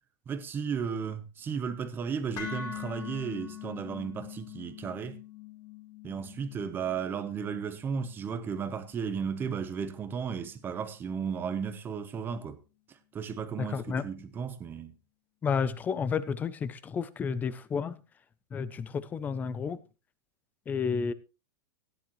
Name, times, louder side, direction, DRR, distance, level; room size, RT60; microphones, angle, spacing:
voice 1, 0.3-5.2 6.0-12.6 12.9-14.9, right 6 dB, 15° right, 0.9 m, -34 dB
sound 1, 2.4-10.5, left 8 dB, 30° left, 3.2 m, -44 dB
voice 2, 13.6-14.0 15.4-18.0 18.5-19.8 20.7-21.1, left 6 dB, 15° left, 0.5 m, -31 dB
16.0 x 10.0 x 3.1 m
supercardioid pair, 165°, 13 cm